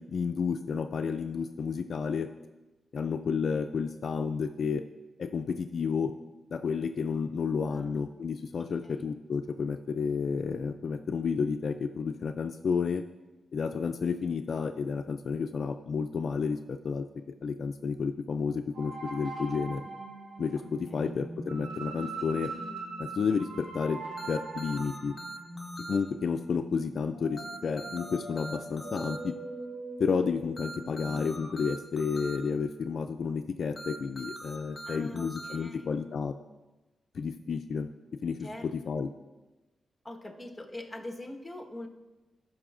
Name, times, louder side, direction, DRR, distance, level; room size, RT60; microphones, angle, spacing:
voice 1, 0.0-2.3 2.9-4.8 5.2-6.1 6.5-13.0 13.5-17.0 17.4-19.8 20.4-22.5 23.0-24.0 24.3-25.1 25.9-29.3 30.0-36.3 37.1-37.9 38.2-38.5 38.9-39.1, left 5 dB, 70° left, 7 dB, 0.3 m, -31 dB
voice 2, 7.7-8.1 8.6-9.0 20.6-21.1 34.8-36.0 38.4-38.9 40.0-41.9, left 1 dB, 15° left, 1 dB, 1.3 m, -44 dB
sound 1, 18.7-31.5, right 2 dB, 80° right, 2.0 m, -41 dB
sound 2, 24.2-26.0 27.4-29.2 30.6-32.4 33.8-35.6, right 2 dB, 40° left, 1.2 m, -42 dB
14.0 x 5.9 x 2.5 m, 1.1 s
cardioid pair, 75°, 0 cm